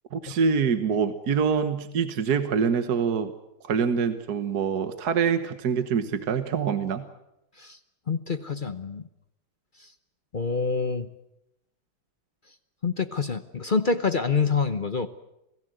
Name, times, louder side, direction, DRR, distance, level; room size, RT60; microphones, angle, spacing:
voice 1, 0.1-3.3 3.6-7.1, right 6 dB, 50° right, 9 dB, 1.6 m, -25 dB
voice 2, 8.1-9.0 9.8-9.9 10.3-11.1 12.8-15.1, left 5 dB, 55° left, 9 dB, 0.5 m, -26 dB
27.5 x 18.5 x 7.9 m, 0.86 s
omnidirectional pair, 2.3 m